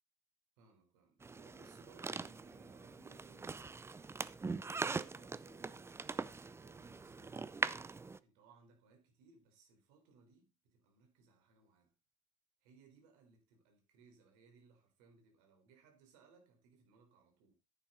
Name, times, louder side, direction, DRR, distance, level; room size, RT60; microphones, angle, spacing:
voice 1, 0.6-3.7 4.4-7.5 8.2-11.9 12.6-17.5, right 4 dB, 90° right, 4.0 m, -65 dB
sound 1, 1.2-8.2, right 4 dB, 15° right, 0.5 m, -42 dB
10.0 x 9.0 x 4.0 m
supercardioid pair, 105°, 16 cm